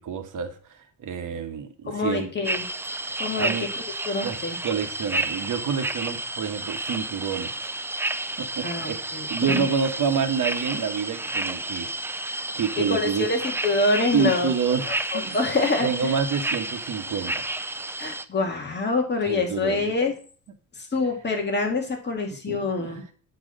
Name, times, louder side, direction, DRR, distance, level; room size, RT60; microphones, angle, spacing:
voice 1, 0.0-2.3 3.4-3.7 4.2-7.5 8.4-9.0 9.3-12.3 12.5-13.3 14.1-14.9 15.1-15.4 15.8-17.5 19.3-19.9 22.4-23.0, right 6 dB, 65° right, 8 dB, 1.2 m, -28 dB
voice 2, 1.9-2.6 3.2-3.5 4.1-4.6 8.6-9.3 9.5-9.6 12.8-14.5 15.1-16.1 18.0-20.1 20.8-23.0, left 3 dB, 30° left, 2 dB, 2.1 m, -26 dB
sound 1, 2.4-18.2, right 2 dB, 5° right, 0.4 m, -31 dB
8.6 x 4.7 x 6.2 m, 0.42 s
cardioid pair, 130°, 34 cm